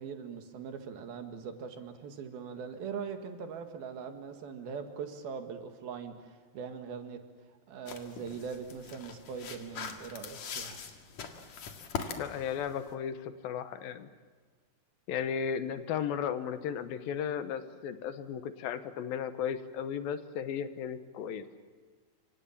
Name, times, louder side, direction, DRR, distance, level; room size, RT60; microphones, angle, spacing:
voice 1, 0.0-7.2 7.7-10.8, right 6 dB, 80° right, 6 dB, 3.7 m, -41 dB
sound 1, 7.9-12.9, left 6 dB, 55° left, 2.9 m, -42 dB
voice 2, 12.2-14.1 15.1-21.4, left 8 dB, 80° left, 10 dB, 2.9 m, -35 dB
28.5 x 25.0 x 7.4 m, 1.5 s
omnidirectional pair, 4.3 m